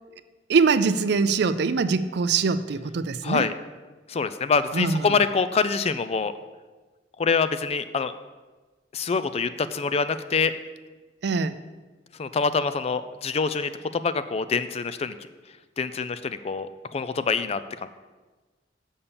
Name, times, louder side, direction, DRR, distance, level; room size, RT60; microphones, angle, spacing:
voice 1, 0.5-3.5 4.7-5.1 11.2-11.6, right 4 dB, 65° right, 13 dB, 0.4 m, -23 dB
voice 2, 3.2-3.5 4.1-6.3 7.2-8.1 8.9-10.5 12.2-15.2 15.8-17.9, left 5 dB, 35° left, 13 dB, 0.4 m, -25 dB
7.2 x 5.5 x 6.9 m, 1.3 s
head